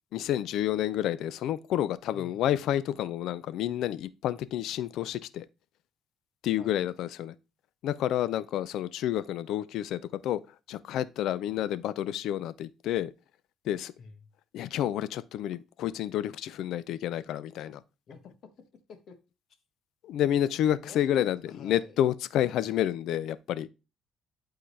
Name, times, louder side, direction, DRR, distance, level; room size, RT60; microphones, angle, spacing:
voice 1, 0.1-5.4 6.4-7.3 7.8-10.4 10.7-13.1 13.7-13.9 14.5-17.8 20.0-23.7, left 11 dB, 75° left, 0.4 m, -29 dB
voice 2, 2.1-2.5 6.6-6.8 11.5-11.7 14.0-14.2 18.1-18.5 18.9-19.2 20.8-22.0, left 5 dB, 55° left, 1.4 m, -49 dB
11.0 x 3.9 x 3.3 m
cardioid pair, 115°, 0 cm